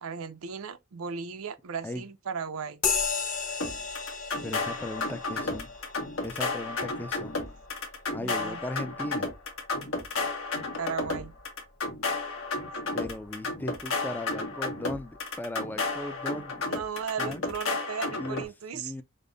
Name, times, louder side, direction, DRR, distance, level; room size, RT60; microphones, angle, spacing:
voice 1, 0.0-2.8 8.1-8.6 10.8-11.3 12.7-12.8 16.7-18.9, right 6 dB, 90° right, 0.5 m, -36 dB
sound 1, 2.8-10.7, left 5 dB, 40° left, 1.1 m, -36 dB
sound 2, 3.6-18.5, left 3 dB, 75° left, 1.1 m, -32 dB
voice 2, 4.4-5.7 6.2-7.4 8.1-9.3 12.9-16.6 17.2-17.4 18.2-18.4 18.7-19.0, left 1 dB, 10° left, 0.3 m, -37 dB
5.2 x 2.1 x 3.8 m
head